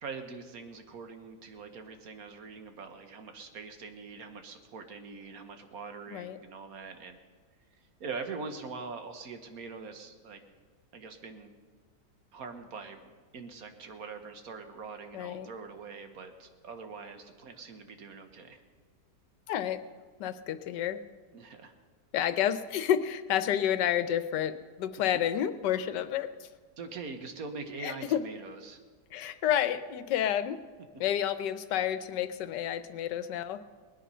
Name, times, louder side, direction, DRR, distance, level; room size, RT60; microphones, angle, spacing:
voice 1, 0.0-7.2 8.0-10.4 10.9-11.5 12.3-18.6 21.3-21.7 26.8-28.8, right 4 dB, 60° right, 7 dB, 1.6 m, -43 dB
voice 2, 15.1-15.5 19.5-19.8 20.2-21.0 22.1-26.5 27.8-28.2 29.1-30.6 31.0-33.6, left 10 dB, 85° left, 13 dB, 1.3 m, -30 dB
19.5 x 10.0 x 5.5 m, 1.5 s
omnidirectional pair, 1.8 m